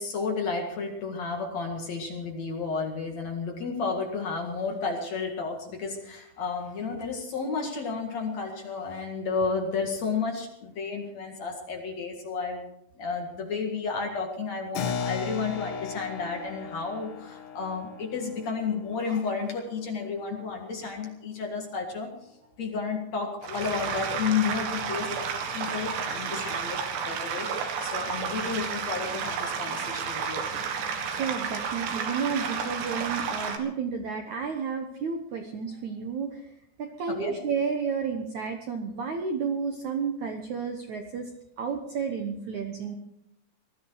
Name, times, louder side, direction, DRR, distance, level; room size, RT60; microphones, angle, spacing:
voice 1, 0.0-12.6 13.0-22.1 22.6-25.3 25.5-30.5 37.1-37.4, left 5 dB, 50° left, 2 dB, 2.6 m, -32 dB
Keyboard (musical), 14.8-20.8, left 6 dB, 85° left, 3.8 m, -37 dB
sound 1, 23.4-33.6, right 6 dB, 85° right, 3.9 m, -31 dB
voice 2, 31.1-36.4 36.8-41.3 41.6-43.0, right 6 dB, 65° right, 4 dB, 1.9 m, -31 dB
20.0 x 13.5 x 4.8 m, 0.81 s
omnidirectional pair, 4.8 m